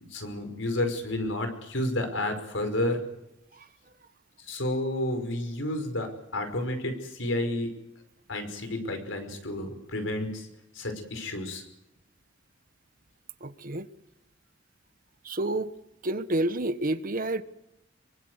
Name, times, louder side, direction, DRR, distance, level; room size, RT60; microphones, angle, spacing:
voice 1, 0.1-3.0 4.4-7.7 8.3-10.5 10.7-11.6, left 1 dB, 80° left, 5.5 m, -31 dB
voice 2, 13.4-13.9 15.2-15.7 16.0-17.4, right 1 dB, 45° right, 1.4 m, -29 dB
25.0 x 23.5 x 8.2 m
head